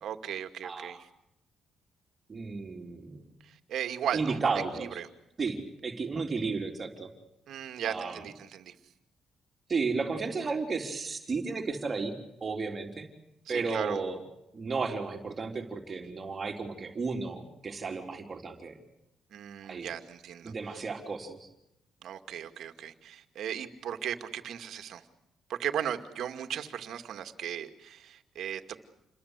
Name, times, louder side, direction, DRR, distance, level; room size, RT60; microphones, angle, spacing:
voice 1, 0.0-1.1 3.4-4.4 4.7-5.1 7.5-8.8 13.5-14.0 19.3-20.9 22.0-25.0 25.5-28.8, right 9 dB, 70° right, 7 dB, 2.3 m, -37 dB
voice 2, 0.6-1.0 2.3-3.2 4.1-5.0 5.4-7.1 7.8-8.2 9.7-12.2 12.4-13.1 13.5-14.2 14.5-18.8 19.7-19.9 20.4-21.5, right 4 dB, 35° right, 3 dB, 3.8 m, -33 dB
29.0 x 22.0 x 8.3 m, 0.84 s
cardioid pair, 105°, 0 cm